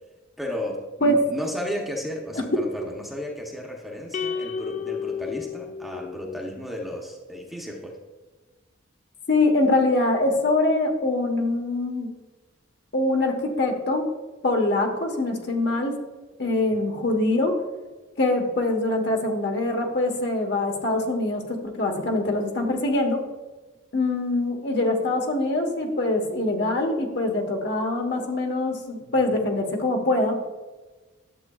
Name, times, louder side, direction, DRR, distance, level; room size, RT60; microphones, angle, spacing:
voice 1, 0.4-8.0 16.6-16.8 29.0-29.1, equal, ahead, -1 dB, 0.8 m, -34 dB
sound 1, 4.1-6.6, left 6 dB, 35° left, 0.3 m, -32 dB
voice 2, 9.3-12.1 12.9-14.0 14.4-16.0 16.4-17.6 18.2-23.2 23.9-30.4, left 2 dB, 55° left, 2 dB, 1.2 m, -24 dB
11.0 x 7.5 x 2.3 m, 1.2 s
head